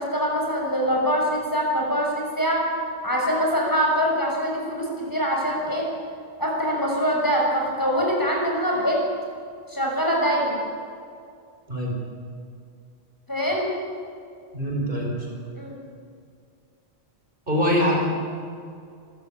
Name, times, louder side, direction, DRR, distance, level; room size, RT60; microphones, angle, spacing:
voice 1, 0.0-2.6 3.0-5.8 6.4-9.0 9.7-10.6 13.3-13.7 15.5-15.8, equal, 20° left, -2 dB, 6.4 m, -24 dB
voice 2, 14.5-15.1 17.5-18.1, equal, 50° right, -1 dB, 5.4 m, -23 dB
28.5 x 14.5 x 8.9 m, 2.3 s
omnidirectional pair, 1.1 m